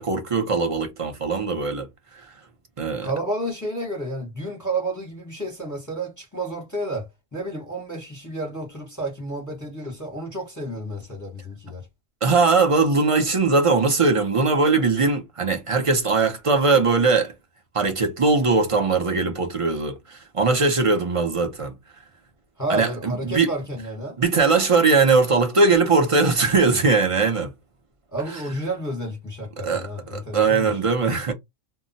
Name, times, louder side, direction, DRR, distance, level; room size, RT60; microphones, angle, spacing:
voice 1, 0.0-1.9 2.8-3.1 12.2-17.3 17.7-21.7 22.7-23.5 24.2-27.5 29.6-31.3, right 4 dB, 35° right, 0.5 m, -20 dB
voice 2, 3.0-11.9 22.6-24.2 28.1-30.8, right 1 dB, 15° left, 0.8 m, -31 dB
2.2 x 2.1 x 3.8 m
omnidirectional pair, 1.3 m